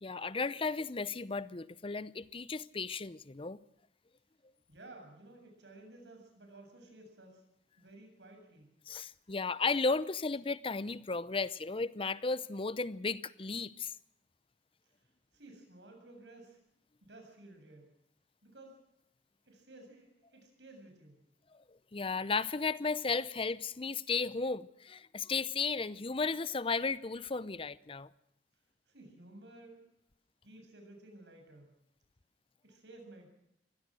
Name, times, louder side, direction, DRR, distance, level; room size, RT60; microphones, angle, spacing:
voice 1, 0.0-3.6 8.9-14.0 21.5-28.1, left 4 dB, 30° left, 0.7 m, -34 dB
voice 2, 4.7-7.4 7.8-8.7 14.9-16.6 17.0-17.9 18.4-18.8 19.5-21.2 28.9-29.8 30.4-31.7 32.6-33.3, right 2 dB, 80° right, 7.5 m, -54 dB
24.0 x 17.0 x 6.3 m
head